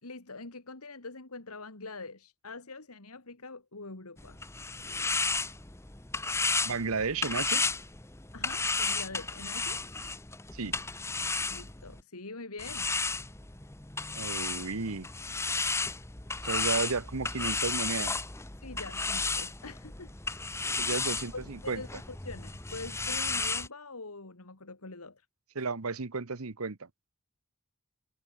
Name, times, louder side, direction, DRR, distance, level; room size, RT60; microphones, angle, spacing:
voice 1, 0.0-4.4 8.3-9.8 11.5-12.9 14.6-14.8 18.6-20.1 20.6-21.9 22.2-25.2, left 3 dB, 90° left, 2.5 m, -44 dB
sound 1, 4.2-12.0 12.6-23.7, left 4 dB, 10° left, 0.9 m, -33 dB
voice 2, 6.6-7.6 10.5-10.8 14.1-15.1 16.4-18.2 20.8-21.8 25.5-26.9, right 4 dB, 80° right, 1.1 m, -33 dB
head